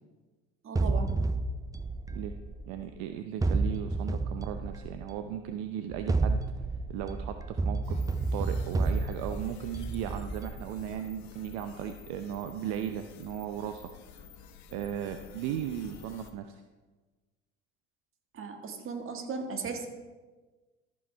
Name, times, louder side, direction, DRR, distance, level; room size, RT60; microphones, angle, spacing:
voice 1, 0.6-1.2 18.3-19.9, right 4 dB, 40° right, 4 dB, 1.8 m, -36 dB
sound 1, 0.8-2.9 3.4-5.2 5.9-11.0, right 3 dB, 10° right, 0.6 m, -31 dB
voice 2, 2.7-6.4 6.9-8.0 8.3-14.3 14.7-16.6, right 9 dB, 65° right, 7 dB, 0.7 m, -36 dB
sound 2, 7.8-16.3, left 7 dB, 60° left, 1.1 m, -50 dB
14.0 x 5.3 x 4.6 m, 1.3 s
hypercardioid pair, 75°, 31 cm